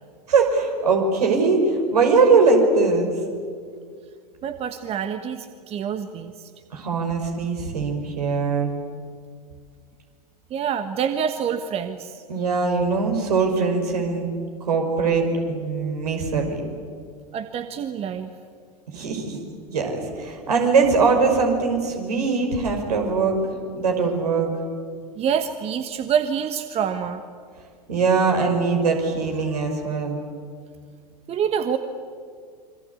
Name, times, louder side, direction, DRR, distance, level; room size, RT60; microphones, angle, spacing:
voice 1, 0.3-3.1 6.7-8.7 12.3-14.3 14.6-16.6 18.9-19.4 19.7-23.5 23.7-24.5 27.9-30.2, right 4 dB, 70° right, 3 dB, 5.8 m, -21 dB
voice 2, 4.4-6.5 10.5-12.2 17.3-18.3 25.2-27.2 31.3-31.8, right 8 dB, 30° right, 9 dB, 1.3 m, -26 dB
27.5 x 23.5 x 8.5 m, 2.1 s
figure-of-eight pair, 90°, 21 cm